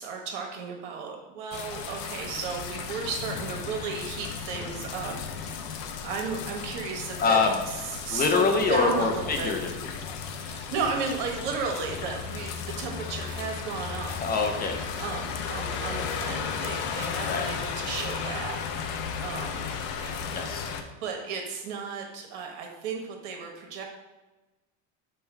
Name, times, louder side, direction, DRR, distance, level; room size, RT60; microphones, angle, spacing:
voice 1, 0.0-5.7 6.0-7.4 7.8-9.5 10.2-14.1 14.7-20.1 21.0-23.8, right 5 dB, 80° right, 1 dB, 1.1 m, -34 dB
sound 1, 1.5-20.8, left 6 dB, 75° left, 0.6 m, -35 dB
voice 2, 7.2-7.6 8.1-9.6 10.4-10.5 14.1-14.8 17.3-17.5 20.3-20.7, left 4 dB, 25° left, 4 dB, 0.5 m, -25 dB
5.5 x 2.2 x 4.4 m, 1.1 s
supercardioid pair, 125°, 36 cm